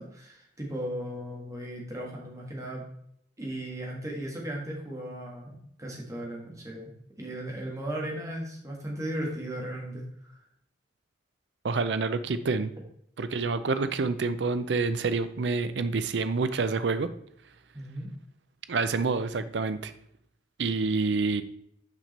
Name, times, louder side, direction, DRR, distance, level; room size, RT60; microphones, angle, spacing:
voice 1, 0.0-2.9 3.4-10.3 17.7-18.1, right 1 dB, 20° right, -2 dB, 1.7 m, -36 dB
voice 2, 11.6-12.7 13.2-17.1 18.7-19.9 20.6-21.4, right 4 dB, 70° right, 12 dB, 0.5 m, -27 dB
6.1 x 5.2 x 4.1 m, 0.70 s
head